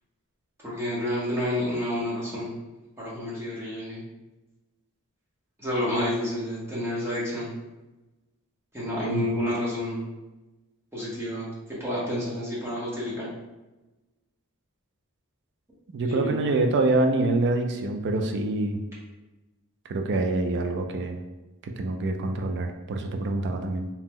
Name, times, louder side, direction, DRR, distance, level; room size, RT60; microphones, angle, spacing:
voice 1, 0.6-2.5 3.0-4.0 5.6-7.5 8.7-10.0 10.9-11.5 11.8-13.3 16.1-16.4, left 1 dB, 10° right, -7 dB, 0.7 m, -29 dB
voice 2, 15.9-18.8 19.9-21.2 21.8-23.9, right 2 dB, 55° right, 4 dB, 0.4 m, -26 dB
2.8 x 2.0 x 3.5 m, 1.1 s
head